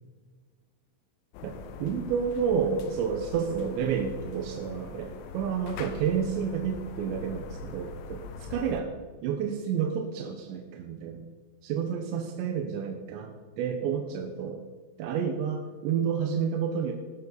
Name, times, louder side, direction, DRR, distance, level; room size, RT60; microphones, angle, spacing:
sound 1, 1.3-8.8, left 4 dB, 75° left, 3.3 m, -42 dB
voice 1, 1.4-8.9 9.2-11.3 11.6-14.6 15.0-16.9, right 7 dB, 70° right, 3 dB, 3.1 m, -30 dB
19.5 x 12.5 x 4.1 m, 1.4 s
omnidirectional pair, 5.9 m